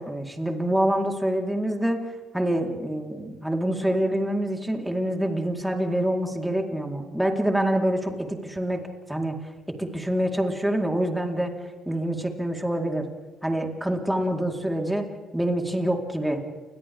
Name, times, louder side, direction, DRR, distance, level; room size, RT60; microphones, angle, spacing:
voice 1, 0.0-2.0 2.3-9.3 9.7-11.6 11.9-13.0 13.4-15.1 15.3-16.4, right 1 dB, 5° right, 2 dB, 4.3 m, -26 dB
29.5 x 24.5 x 3.7 m, 1.4 s
hypercardioid pair, 50°, 0 cm